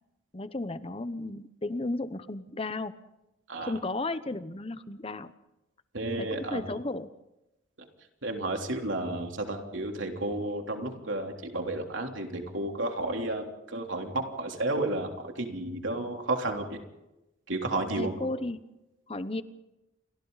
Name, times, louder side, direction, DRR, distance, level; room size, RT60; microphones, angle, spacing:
voice 1, 0.3-2.9 3.6-5.3 6.2-7.1 18.0-18.6 19.1-19.4, left 2 dB, 30° left, 12 dB, 0.9 m, -34 dB
voice 2, 5.9-6.6 8.2-16.8 17.5-18.2, right 2 dB, 75° right, 2 dB, 3.4 m, -32 dB
29.5 x 24.5 x 4.1 m, 0.95 s
head